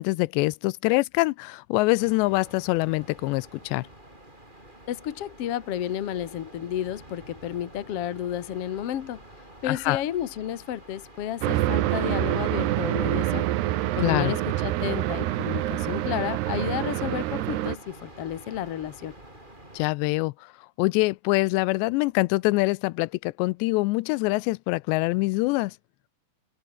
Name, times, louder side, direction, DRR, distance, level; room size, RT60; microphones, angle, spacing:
voice 1, 0.0-3.9 9.6-10.0 14.0-14.3 19.7-20.5 20.8-25.8, left 23 dB, 85° left, 2.8 m, -24 dB
sound 1, 2.0-19.9, right 1 dB, 10° right, 7.4 m, -48 dB
voice 2, 4.9-9.2 9.6-13.5 13.9-19.1, left 11 dB, 65° left, 1.5 m, -32 dB
sound 2, 11.4-17.8, right 15 dB, 75° right, 3.1 m, -26 dB
omnidirectional pair, 5.0 m